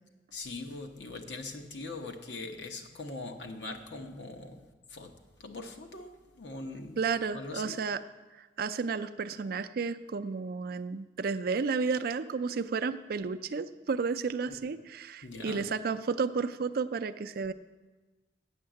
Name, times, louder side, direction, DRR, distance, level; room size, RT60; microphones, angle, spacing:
voice 1, 0.3-5.1 5.4-7.0 7.3-7.8 14.5-14.6 15.2-15.7, left 3 dB, 80° left, 4 dB, 1.1 m, -42 dB
voice 2, 7.0-8.0 8.3-17.5, right 5 dB, 55° right, 11 dB, 0.4 m, -32 dB
8.6 x 7.2 x 7.6 m, 1.2 s
head